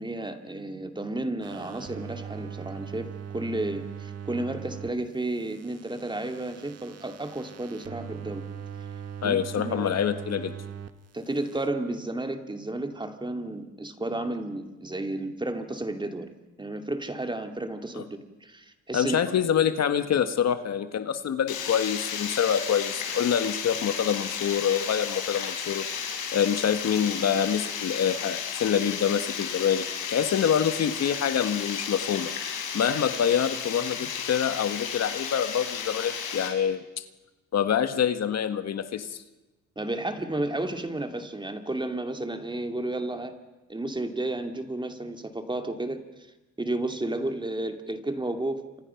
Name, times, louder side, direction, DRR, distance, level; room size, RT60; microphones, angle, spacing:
voice 1, 0.0-8.5 9.2-9.4 9.6-9.9 11.1-16.3 16.6-19.2 39.8-43.3 43.7-46.0 46.6-48.6, right 2 dB, 15° right, 6 dB, 2.5 m, -32 dB
sound 1, 1.4-4.9 5.2-10.9 11.2-11.7, right 7 dB, 55° right, 1.7 m, -40 dB
voice 2, 9.2-10.5 18.0-18.1 18.9-25.8 26.3-32.3 32.7-36.8 37.5-39.2, left 8 dB, 60° left, 10 dB, 1.5 m, -26 dB
Water, 21.5-36.5, left 7 dB, 90° left, 5.7 m, -33 dB
30.0 x 26.0 x 5.9 m, 1.1 s
cardioid pair, 90°, 30 cm